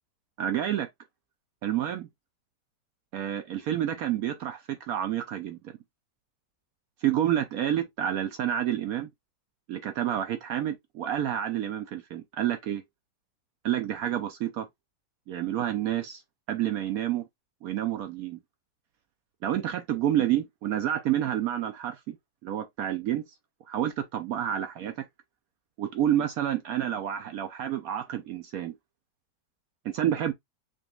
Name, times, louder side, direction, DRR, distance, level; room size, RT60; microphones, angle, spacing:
voice 1, 0.4-0.9 1.6-2.1 3.1-5.7 7.0-9.1 9.7-12.8 13.6-14.7 15.3-16.2 16.5-17.3 17.6-18.4 19.4-22.2 22.4-23.2 23.7-25.1 25.8-28.7 29.8-30.3, right 11 dB, 70° right, 0.9 m, -29 dB
5.2 x 2.9 x 2.3 m
omnidirectional pair, 1.9 m